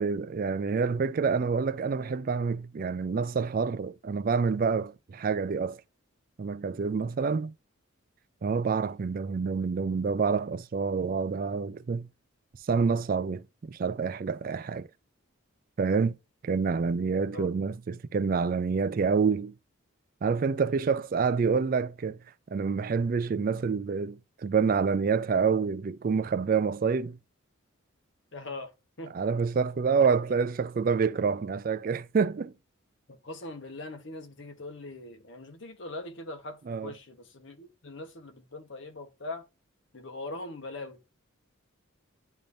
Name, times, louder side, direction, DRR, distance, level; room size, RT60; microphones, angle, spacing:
voice 1, 0.0-5.8 6.4-7.5 8.4-12.1 12.6-14.9 15.8-16.2 16.4-19.5 20.2-22.2 22.5-27.2 29.1-32.5 36.7-36.9, right 5 dB, 40° right, 0.3 m, -27 dB
voice 2, 28.3-28.7 29.0-29.1 33.1-39.4 39.9-41.0, left 2 dB, 60° left, 1.2 m, -41 dB
10.5 x 3.5 x 2.6 m
head